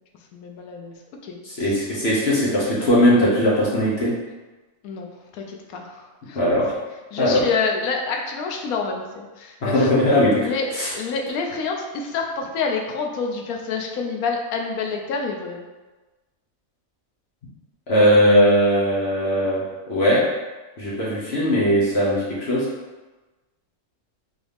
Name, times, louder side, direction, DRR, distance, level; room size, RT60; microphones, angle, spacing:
voice 1, 0.3-0.9 1.2-1.4 1.7-1.8 4.8-5.1 5.3-6.4 7.1-9.9 10.4-15.6, left 4 dB, 85° left, 2 dB, 1.1 m, -28 dB
voice 2, 1.4-4.1 6.3-6.7 7.2-7.4 9.6-10.5 10.7-10.9 17.9-20.2 20.8-22.7, equal, 50° left, -7 dB, 1.2 m, -19 dB
3.9 x 3.0 x 3.4 m, 1.2 s
omnidirectional pair, 1.5 m